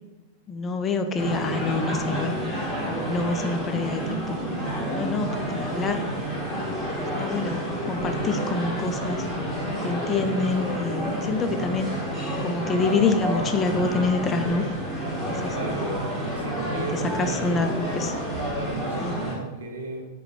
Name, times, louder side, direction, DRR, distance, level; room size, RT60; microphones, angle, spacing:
voice 1, 0.5-2.3 2.9-4.4 4.9-6.0 7.0-9.2 9.8-11.9 12.4-14.6 15.2-15.6 16.7-18.1 19.0-19.2, left 4 dB, 25° left, 7 dB, 0.3 m, -27 dB
sound 1, 1.2-19.4, right 1 dB, ahead, 1.3 m, -29 dB
voice 2, 15.4-16.1 16.3-18.1 18.5-20.0, right 2 dB, 75° right, 2 dB, 0.7 m, -37 dB
4.4 x 2.2 x 3.6 m, 1.1 s
figure-of-eight pair, 90°, 0 cm